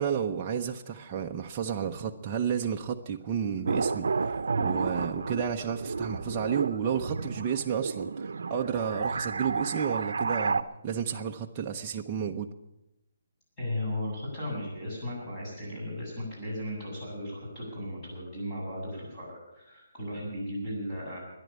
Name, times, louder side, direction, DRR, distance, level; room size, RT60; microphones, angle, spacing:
voice 1, 0.0-12.5, right 7 dB, 20° right, 1 dB, 0.7 m, -31 dB
sound 1, 3.7-10.6, right 4 dB, 80° right, 0.6 m, -31 dB
voice 2, 13.6-21.2, left 1 dB, 15° left, -7 dB, 7.8 m, -36 dB
12.5 x 10.5 x 8.7 m, 0.93 s
hypercardioid pair, 170°, 0 cm